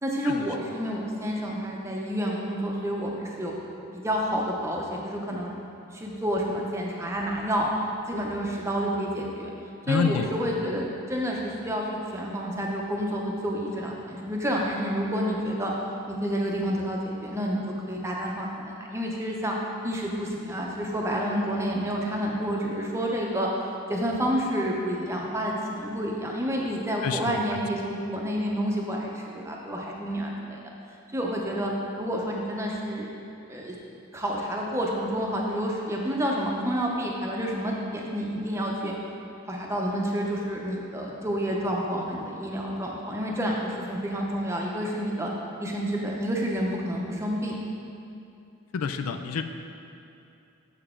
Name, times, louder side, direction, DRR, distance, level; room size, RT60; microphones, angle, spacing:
voice 1, 0.0-3.6 3.9-5.5 5.9-7.7 8.1-9.5 9.9-11.8 12.1-15.7 16.1-19.6 19.8-23.5 23.9-30.6 31.1-31.7 32.0-33.1 33.5-33.8 34.1-38.9 39.5-45.3 45.6-47.6, equal, 15° right, -2 dB, 0.7 m, -29 dB
voice 2, 9.9-10.3 27.0-27.6 48.7-49.4, left 6 dB, 80° left, 8 dB, 0.4 m, -28 dB
6.9 x 6.8 x 3.7 m, 2.7 s
head